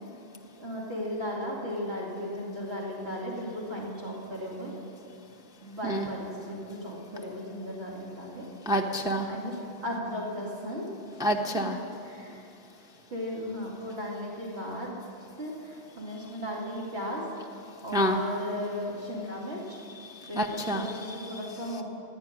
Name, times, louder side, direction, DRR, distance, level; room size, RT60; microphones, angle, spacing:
voice 1, 0.6-4.7 5.6-8.4 9.3-9.5 9.8-11.2 12.0-12.4 13.1-14.9 15.4-17.3 17.8-19.8 20.3-21.8, equal, 65° right, -4 dB, 2.8 m, -36 dB
voice 2, 8.7-9.3 11.2-11.8 17.9-18.2 20.4-20.9, equal, 5° right, 2 dB, 0.7 m, -27 dB
15.5 x 9.5 x 9.7 m, 2.7 s
omnidirectional pair, 1.2 m